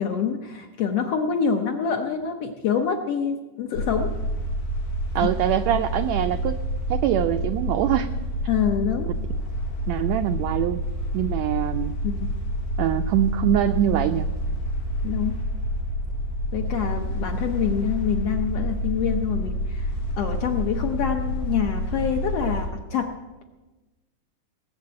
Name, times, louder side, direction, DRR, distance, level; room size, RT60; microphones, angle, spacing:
voice 1, 0.0-4.1 5.1-5.4 8.5-9.1 12.0-12.3 15.0-15.4 16.5-23.1, left 7 dB, 70° left, 4 dB, 1.5 m, -26 dB
sound 1, 3.7-22.7, equal, 90° left, 3.5 m, -28 dB
voice 2, 5.1-6.6 6.9-8.1 9.9-10.8 11.1-11.9 12.8-14.3, right 11 dB, 85° right, 8 dB, 1.5 m, -23 dB
18.5 x 7.5 x 8.6 m, 1.1 s
omnidirectional pair, 3.7 m